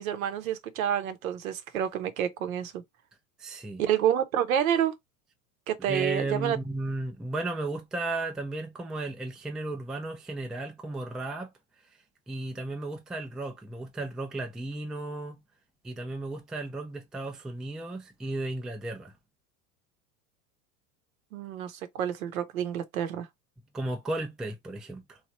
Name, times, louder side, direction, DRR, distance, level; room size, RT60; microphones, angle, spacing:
voice 1, 0.0-2.8 3.8-4.9 5.7-6.6 21.3-23.3, right 10 dB, 70° right, 0.8 m, -28 dB
voice 2, 3.4-3.8 5.9-11.5 12.3-15.4 15.8-19.1 23.7-25.2, right 2 dB, ahead, 0.4 m, -34 dB
3.2 x 2.4 x 2.9 m
hypercardioid pair, 85°, 43 cm